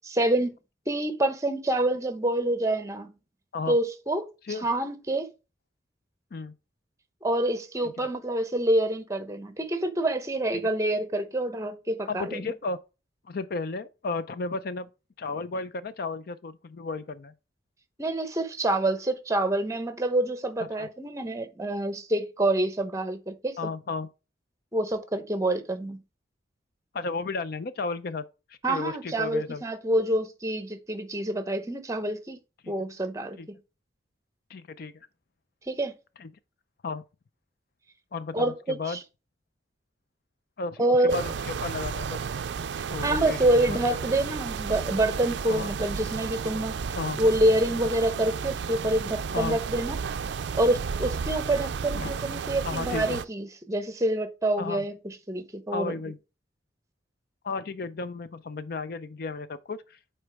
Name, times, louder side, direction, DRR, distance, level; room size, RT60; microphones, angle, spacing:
voice 1, 0.2-0.6 0.9-3.1 3.7-4.2 4.6-5.3 7.2-12.4 18.0-23.6 24.7-26.0 28.6-32.4 32.7-33.4 35.7-35.9 38.3-39.0 40.8-41.2 43.0-46.7 47.2-50.0 50.5-55.9, right 1 dB, 15° right, 0.8 m, -27 dB
voice 2, 12.1-12.8 13.3-14.9 15.2-17.3 20.8-20.9 23.6-24.1 26.9-28.2 28.5-29.6 32.6-32.7 33.4-33.5 34.5-34.9 36.2-36.3 36.8-37.0 38.1-39.0 40.6-42.2 42.9-43.8 45.5-45.7 46.9-47.2 49.3-49.6 51.9-52.1 52.6-53.2 54.6-54.9 55.7-56.2 57.4-60.0, left 4 dB, 55° left, 0.5 m, -34 dB
sound 1, 41.1-53.2, right 6 dB, 65° right, 0.4 m, -33 dB
7.9 x 4.4 x 3.4 m
head